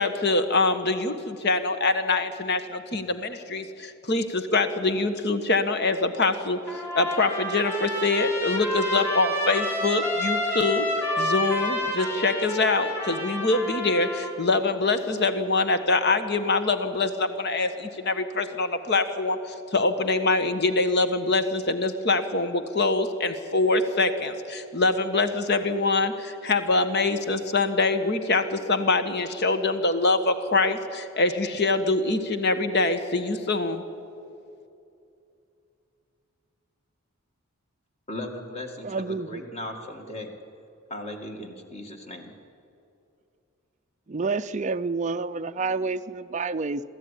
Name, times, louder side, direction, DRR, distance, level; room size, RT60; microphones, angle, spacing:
voice 1, 0.0-33.8, left 3 dB, 50° left, 9 dB, 1.4 m, -24 dB
Trumpet, 6.7-14.3, left 1 dB, 10° left, 4.3 m, -29 dB
voice 2, 38.1-40.3 40.9-42.3, left 1 dB, 30° left, 4 dB, 2.1 m, -37 dB
voice 3, 38.8-39.4 44.1-46.8, right 4 dB, 30° right, 9 dB, 0.5 m, -29 dB
23.0 x 15.0 x 10.0 m, 2.6 s
head